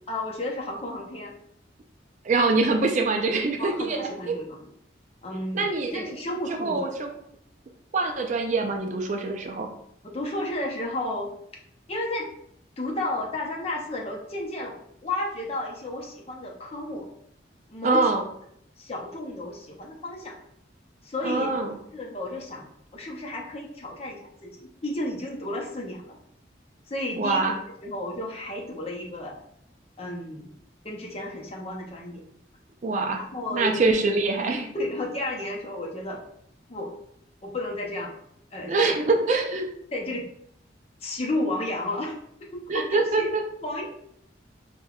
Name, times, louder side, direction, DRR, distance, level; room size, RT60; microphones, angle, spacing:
voice 1, 0.1-1.4 3.6-4.7 5.2-7.0 10.0-11.3 11.9-12.3 12.8-17.1 17.7-18.1 18.8-20.3 21.0-21.5 21.9-26.2 26.9-27.5 27.8-29.4 30.0-30.5 30.8-32.2 33.1-33.8 34.5-36.2 36.7-36.9 37.4-38.2 38.5-38.9 39.9-40.3 41.0-43.3 43.6-43.9, left 1 dB, 30° left, 0 dB, 0.6 m, -32 dB
voice 2, 2.2-4.4 5.5-6.2 6.5-7.1 7.9-9.7 17.8-18.2 21.2-21.8 27.2-27.5 32.8-33.2 33.5-34.7 38.7-39.7 42.7-43.4, right 3 dB, 40° right, 3 dB, 0.4 m, -24 dB
5.7 x 2.2 x 2.3 m, 0.71 s
head